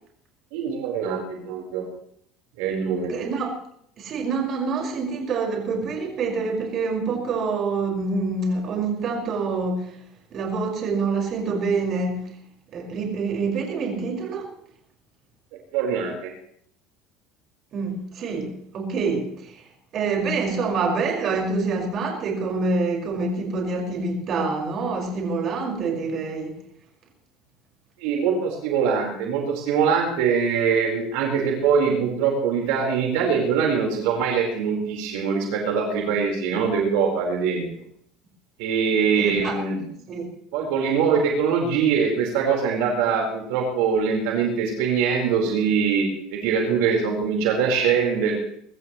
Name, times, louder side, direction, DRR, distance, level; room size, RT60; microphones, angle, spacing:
voice 1, 0.5-1.8 2.6-3.1 15.7-16.3 28.0-37.6 38.6-39.8 40.5-48.3, right 6 dB, 80° right, 0 dB, 4.6 m, -23 dB
voice 2, 3.1-3.5 4.0-9.9 10.3-12.3 12.7-14.5 17.7-19.7 19.9-26.6 39.1-39.6 40.1-40.3, right 4 dB, 45° right, 0 dB, 5.6 m, -26 dB
24.0 x 14.5 x 3.2 m, 0.68 s
supercardioid pair, 125°, 0 cm